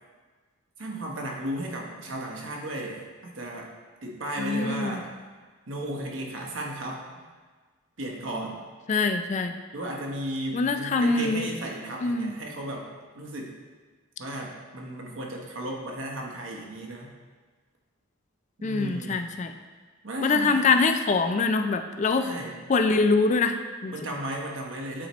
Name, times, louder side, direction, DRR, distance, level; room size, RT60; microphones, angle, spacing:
voice 1, 0.8-3.7 4.0-5.1 5.7-7.1 8.0-8.6 9.7-12.9 13.1-13.5 14.2-17.1 18.6-19.3 20.0-20.7 22.1-22.6 23.9-25.1, right 1 dB, 70° right, -1 dB, 1.1 m, -35 dB
voice 2, 4.4-5.0 8.9-9.6 10.5-11.5 12.0-12.4 18.6-19.5 20.2-22.3 22.7-23.9, left 4 dB, 35° left, 7 dB, 0.3 m, -24 dB
8.6 x 4.2 x 3.0 m, 1.4 s
head